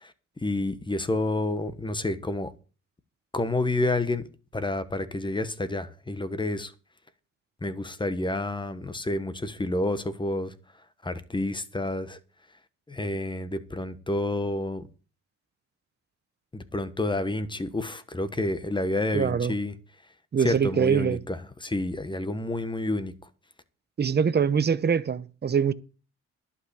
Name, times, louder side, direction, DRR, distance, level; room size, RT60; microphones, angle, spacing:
voice 1, 0.4-2.5 3.3-4.2 4.5-6.7 7.6-10.5 11.0-12.2 12.9-14.8 16.5-19.7 20.4-23.1, left 2 dB, 15° left, 1.3 m, -29 dB
voice 2, 19.1-19.5 20.3-21.2 24.0-25.7, right 7 dB, 35° right, 0.9 m, -23 dB
11.5 x 5.6 x 8.2 m
cardioid pair, 90°, 30 cm